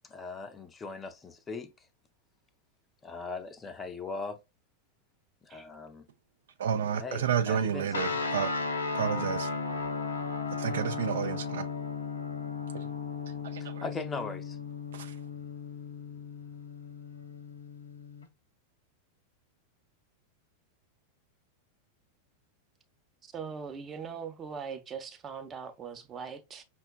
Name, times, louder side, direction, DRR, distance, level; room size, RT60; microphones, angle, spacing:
voice 1, 0.0-1.9 3.0-4.4 5.4-6.0 7.0-7.9 13.6-14.6, left 4 dB, 20° left, 0.5 m, -39 dB
voice 2, 6.6-8.6 8.9-9.5 10.6-11.7 12.7-12.9 13.4-13.8 14.9-15.1, right 8 dB, 60° right, 0.3 m, -31 dB
sound 1, 7.9-18.3, left 4 dB, 70° left, 0.5 m, -35 dB
voice 3, 23.3-26.6, right 6 dB, 25° right, 0.6 m, -40 dB
5.6 x 2.1 x 2.3 m
figure-of-eight pair, 90°, 0 cm